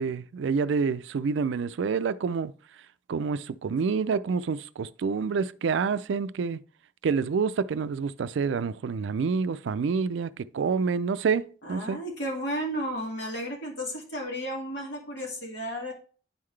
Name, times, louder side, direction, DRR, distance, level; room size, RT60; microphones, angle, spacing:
voice 1, 0.0-2.5 3.1-6.6 7.0-12.0, right 5 dB, 75° right, 0.3 m, -28 dB
voice 2, 11.6-15.9, equal, 70° left, 2.2 m, -33 dB
10.5 x 3.8 x 3.2 m
head